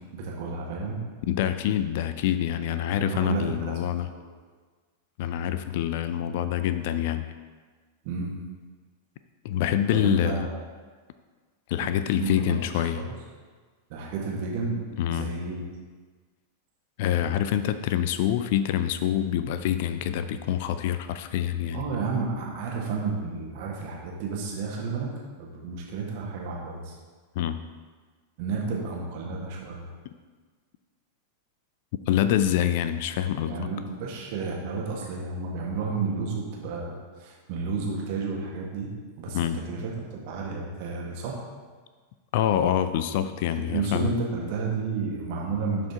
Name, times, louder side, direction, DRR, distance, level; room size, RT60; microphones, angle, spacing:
voice 1, 0.1-1.0 3.0-4.2 8.0-8.3 9.9-10.6 12.2-13.1 13.9-14.8 15.1-15.6 21.7-25.1 25.4-26.9 28.4-29.9 33.5-36.9 37.2-38.9 39.2-41.4 43.7-45.9, right 4 dB, 45° right, -2 dB, 1.9 m, -31 dB
voice 2, 1.2-4.1 5.2-7.3 9.4-10.5 11.7-13.1 15.0-15.3 17.0-21.8 27.4-27.6 32.1-33.6 39.3-39.6 42.3-44.1, left 10 dB, 50° left, 11 dB, 0.4 m, -26 dB
11.0 x 5.0 x 3.8 m, 1.5 s
figure-of-eight pair, 90°, 0 cm